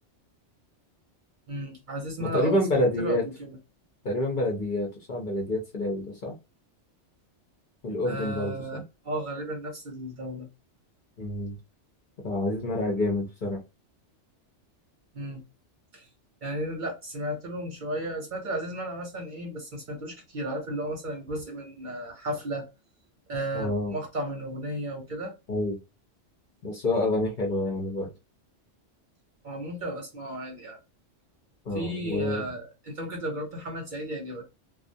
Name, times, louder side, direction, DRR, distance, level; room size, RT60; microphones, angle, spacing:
voice 1, 1.5-3.6 8.0-8.8 9.0-10.5 15.1-15.4 15.9-16.1 16.4-22.7 23.3-25.3 29.4-30.8 31.7-34.4, right 1 dB, 50° right, 0.8 m, -34 dB
voice 2, 2.2-3.2 4.0-6.3 7.8-8.8 11.2-11.6 12.2-13.6 23.5-23.9 25.5-25.8 26.6-28.1 31.7-32.4, left 1 dB, 50° left, 0.7 m, -28 dB
2.3 x 2.1 x 2.6 m
omnidirectional pair, 1.2 m